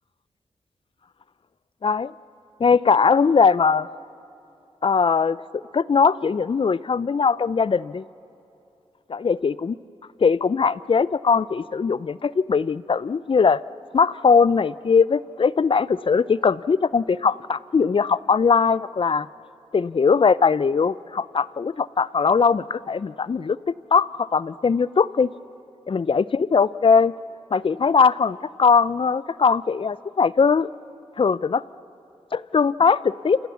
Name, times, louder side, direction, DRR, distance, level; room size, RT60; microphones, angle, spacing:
voice 1, 1.8-2.1 2.6-3.9 4.8-8.0 9.1-9.8 10.2-13.6 13.9-19.3 19.7-25.3 25.9-27.1 27.5-30.7 31.2-31.6 32.3-33.4, left 5 dB, 45° left, 18 dB, 0.6 m, -20 dB
28.0 x 28.0 x 7.2 m, 2.9 s
supercardioid pair, 40°, 12 cm